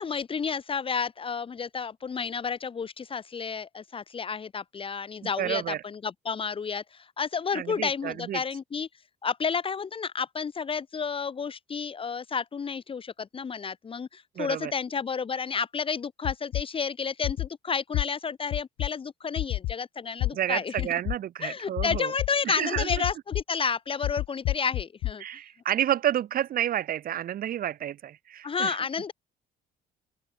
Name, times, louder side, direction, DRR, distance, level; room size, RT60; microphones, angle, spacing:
voice 1, 0.0-8.9 9.2-20.9 21.4-25.2 28.4-29.1, left 6 dB, 30° left, 1.9 m, -31 dB
voice 2, 5.2-5.8 7.5-8.4 14.4-14.7 20.3-22.1 22.4-23.0 25.2-28.8, right 11 dB, 60° right, 3.5 m, -30 dB
sound 1, 16.2-16.6 17.2-17.5 17.9-18.0 18.5-18.9 19.4-19.7 20.2-20.3 20.8-21.2 21.8-22.3 22.8-23.4 24.0-25.1, left 17 dB, 75° left, 0.9 m, -28 dB
open air
cardioid pair, 110°, 17 cm